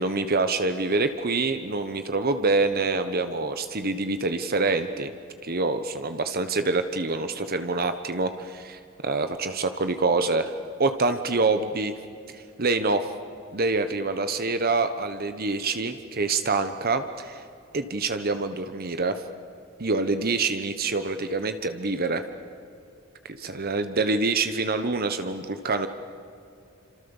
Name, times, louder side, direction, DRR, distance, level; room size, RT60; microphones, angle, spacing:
voice 1, 0.0-5.1 5.4-10.5 10.8-12.0 12.3-13.0 13.5-17.4 17.7-19.2 19.8-22.2 23.4-25.9, right 3 dB, 45° right, 9 dB, 1.1 m, -26 dB
28.0 x 26.5 x 7.2 m, 2.5 s
head